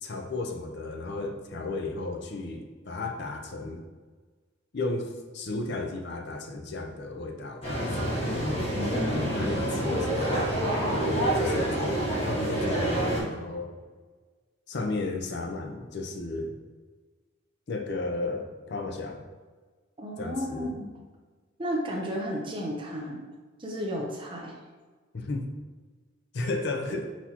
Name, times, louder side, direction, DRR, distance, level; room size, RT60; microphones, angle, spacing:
voice 1, 0.0-3.8 4.7-8.2 9.3-10.5 10.9-13.8 14.7-16.6 17.7-19.3 20.2-20.7 25.1-25.5 26.3-27.1, left 2 dB, 55° left, 4 dB, 0.5 m, -34 dB
sound 1, 7.6-13.2, right 1 dB, 30° left, 1.1 m, -27 dB
voice 2, 8.6-9.8 20.0-21.0 21.6-23.2 23.6-24.6, equal, 25° right, -1 dB, 0.7 m, -34 dB
4.3 x 4.1 x 2.9 m, 1.4 s
head